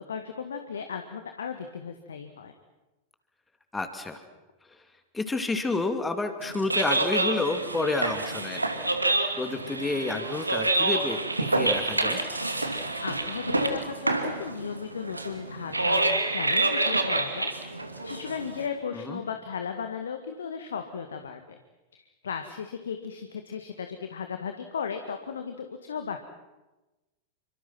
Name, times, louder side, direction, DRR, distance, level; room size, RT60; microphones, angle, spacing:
voice 1, 0.0-2.5 13.0-17.7 18.0-21.6 21.9-26.2, left 6 dB, 65° left, 6 dB, 1.9 m, -36 dB
voice 2, 3.7-4.2 5.1-8.7 9.4-12.2 18.9-19.2, left 3 dB, 10° left, 7 dB, 2.8 m, -30 dB
sound 1, 6.4-18.7, right 2 dB, 80° right, 2.6 m, -28 dB
28.5 x 25.5 x 6.0 m, 1.1 s
figure-of-eight pair, 90°, 0 cm